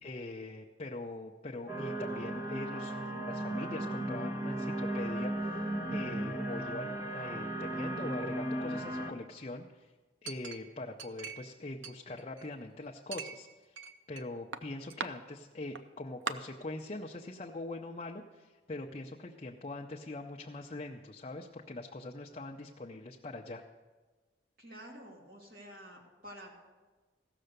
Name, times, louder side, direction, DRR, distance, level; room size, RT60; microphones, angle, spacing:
voice 1, 0.0-9.9 10.2-23.6, left 2 dB, 30° left, 1 dB, 0.6 m, -43 dB
sound 1, 1.7-9.1, right 1 dB, 10° right, 1.0 m, -36 dB
Chink clink, 10.3-11.5 11.8-12.6 13.1-14.2 14.5-15.1 15.8-15.9 16.3-16.4, right 5 dB, 85° right, 0.6 m, -41 dB
voice 2, 24.6-26.5, equal, 50° right, -1 dB, 2.6 m, -49 dB
15.5 x 6.7 x 6.6 m, 1.3 s
head